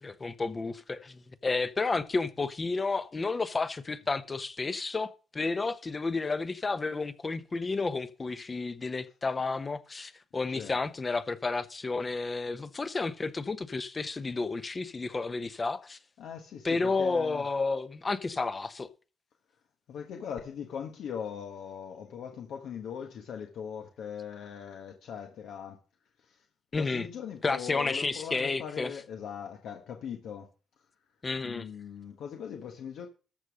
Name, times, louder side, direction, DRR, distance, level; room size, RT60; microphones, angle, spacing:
voice 1, 0.0-16.0 16.6-18.9 26.7-27.1 27.4-28.9 31.2-31.7, left 3 dB, 30° left, 0.9 m, -31 dB
voice 2, 16.2-17.4 19.9-25.8 26.2-26.4 26.7-30.5 31.4-33.1, left 8 dB, 75° left, 1.5 m, -40 dB
13.5 x 5.4 x 6.3 m
cardioid pair, 90°, 0 cm